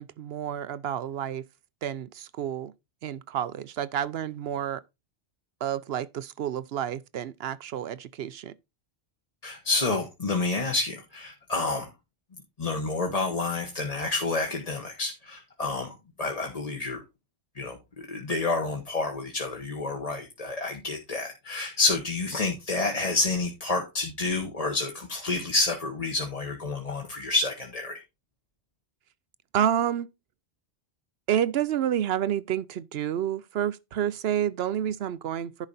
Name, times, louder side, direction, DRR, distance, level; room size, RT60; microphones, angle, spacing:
voice 1, 0.0-1.5 1.8-2.7 3.0-4.8 5.6-8.5 29.5-30.1 31.3-35.7, right 10 dB, 70° right, 0.8 m, -29 dB
voice 2, 9.4-11.9 12.6-15.9 16.2-17.0 17.6-28.0, left 3 dB, 35° left, 1.3 m, -29 dB
10.5 x 5.0 x 4.1 m
omnidirectional pair, 1.1 m